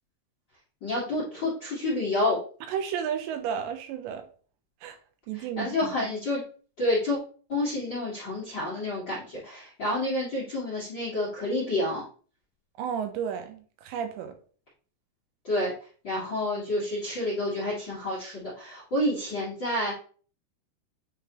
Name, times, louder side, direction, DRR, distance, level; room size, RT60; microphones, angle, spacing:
voice 1, 0.8-2.4 5.6-6.4 6.8-7.2 7.5-12.0 15.4-15.7 16.0-19.9, left 1 dB, 55° left, 1.2 m, -29 dB
voice 2, 2.7-4.3 4.8-5.0 5.3-6.1 12.8-14.4, right 8 dB, 80° right, 3.0 m, -33 dB
9.4 x 3.5 x 3.0 m
omnidirectional pair, 5.1 m